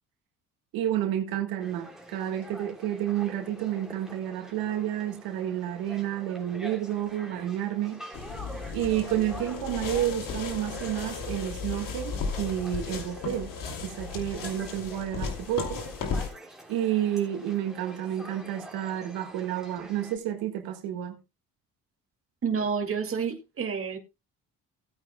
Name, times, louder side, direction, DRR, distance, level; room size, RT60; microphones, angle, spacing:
voice 1, 0.7-8.0 8.7-13.5 13.8-15.8 16.7-21.2, right 11 dB, 90° right, 1.7 m, -30 dB
sound 1, 1.6-20.2, right 1 dB, ahead, 3.3 m, -46 dB
sound 2, 8.1-16.3, left 5 dB, 65° left, 2.8 m, -35 dB
voice 2, 22.4-24.0, right 6 dB, 40° right, 2.3 m, -29 dB
18.0 x 8.9 x 2.2 m
cardioid pair, 90°, 35 cm